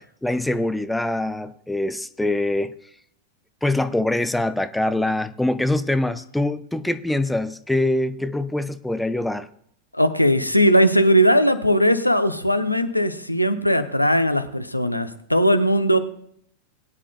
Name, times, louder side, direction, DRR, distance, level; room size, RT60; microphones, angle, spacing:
voice 1, 0.2-2.7 3.6-9.5, left 1 dB, 5° left, 0.5 m, -24 dB
voice 2, 9.9-16.0, equal, 85° left, 0.7 m, -19 dB
20.5 x 9.9 x 2.2 m
figure-of-eight pair, 90°, 0 cm